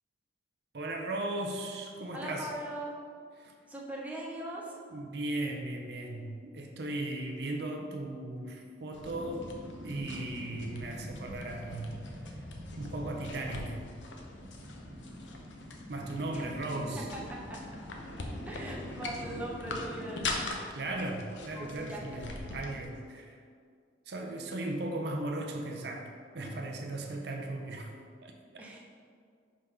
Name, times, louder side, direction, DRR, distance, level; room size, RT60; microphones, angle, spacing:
voice 1, 0.7-2.5 3.4-3.5 4.9-9.5 9.8-12.0 12.3-12.4 12.8-13.8 15.9-17.1 20.7-23.4 24.1-27.9 28.2-28.7, right 2 dB, 60° right, 2 dB, 0.6 m, -37 dB
voice 2, 2.1-3.0 3.7-4.8 16.3-16.5 17.1-17.6 18.5-20.7 21.5-22.1 28.6-28.8, right 1 dB, 10° right, -3 dB, 0.7 m, -40 dB
sound 1, 8.9-22.9, left 2 dB, 80° left, 0.7 m, -43 dB
sound 2, 9.0-20.5, equal, 25° right, 1.3 m, -45 dB
5.2 x 3.5 x 5.5 m, 2.2 s
head